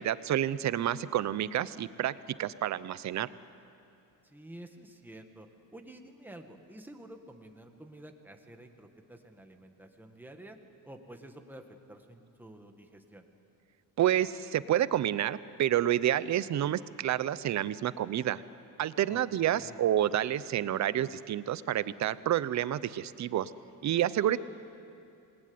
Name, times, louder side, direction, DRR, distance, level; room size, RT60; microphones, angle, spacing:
voice 1, 0.0-2.1 2.4-3.3 14.0-18.4 18.8-23.5 23.8-24.4, right 11 dB, 55° right, 16 dB, 0.8 m, -29 dB
voice 2, 4.2-10.6 10.8-13.2 19.1-19.8, right 1 dB, 5° right, 4 dB, 1.6 m, -50 dB
27.0 x 20.5 x 9.6 m, 2.7 s
cardioid pair, 160°, 35 cm